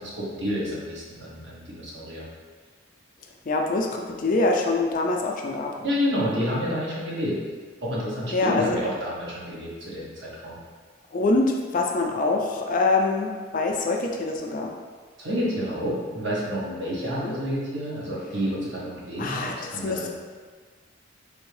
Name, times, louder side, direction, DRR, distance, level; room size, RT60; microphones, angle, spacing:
voice 1, 0.0-2.2 5.8-7.3 7.8-10.6 15.2-20.1, equal, 60° right, -5 dB, 1.0 m, -29 dB
voice 2, 3.5-5.8 8.3-8.8 11.1-14.7 17.0-17.3 19.2-20.1, left 3 dB, 40° left, 1 dB, 0.3 m, -25 dB
3.5 x 3.3 x 3.2 m, 1.5 s
head